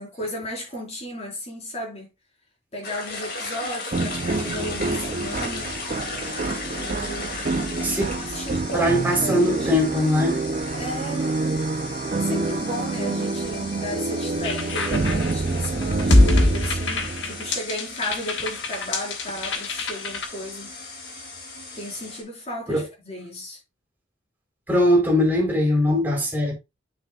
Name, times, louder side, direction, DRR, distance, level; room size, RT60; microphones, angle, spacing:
voice 1, 0.0-2.1 2.7-5.7 6.8-7.3 8.1-9.8 10.8-11.4 12.1-20.7 21.7-23.6, equal, 35° left, 4.2 m, -34 dB
sound 1, 2.8-22.2, left 3 dB, 50° left, 2.4 m, -37 dB
sound 2, 3.9-17.6, right 3 dB, 40° right, 0.4 m, -27 dB
voice 2, 8.7-10.4 22.7-22.8 24.7-26.5, left 1 dB, 10° right, 3.4 m, -20 dB
sound 3, 14.4-20.2, left 2 dB, 70° left, 1.4 m, -23 dB
9.7 x 6.0 x 2.3 m
head